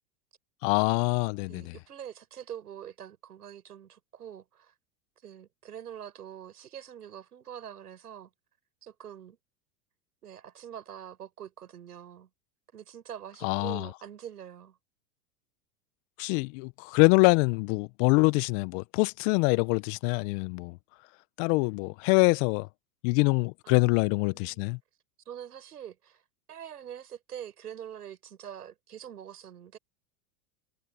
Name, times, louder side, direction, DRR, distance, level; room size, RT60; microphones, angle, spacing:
voice 1, 0.6-1.7 13.4-13.9 16.2-20.8 21.4-22.7 23.0-24.8, left 29 dB, 50° left, 1.2 m, -25 dB
voice 2, 1.5-4.7 5.2-8.3 8.8-9.4 10.2-12.3 12.7-14.8 23.6-24.7 25.3-26.2 26.5-29.8, right 9 dB, 85° right, 7.3 m, -44 dB
hypercardioid pair, 100°, 45 cm